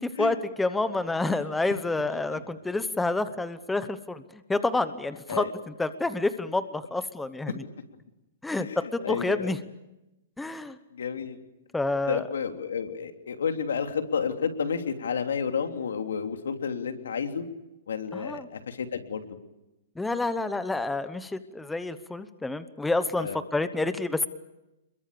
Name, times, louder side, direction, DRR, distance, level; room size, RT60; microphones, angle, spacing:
voice 1, 0.0-5.5 5.8-7.6 8.4-9.6 10.4-10.8 11.7-12.2 18.1-18.5 20.0-24.3, left 2 dB, 5° left, 12 dB, 0.9 m, -28 dB
voice 2, 8.6-9.5 10.9-11.4 12.1-17.4 17.9-19.3 23.2-23.4, left 6 dB, 90° left, 6 dB, 3.2 m, -31 dB
28.5 x 22.0 x 6.9 m, 0.95 s
hypercardioid pair, 165°, 0 cm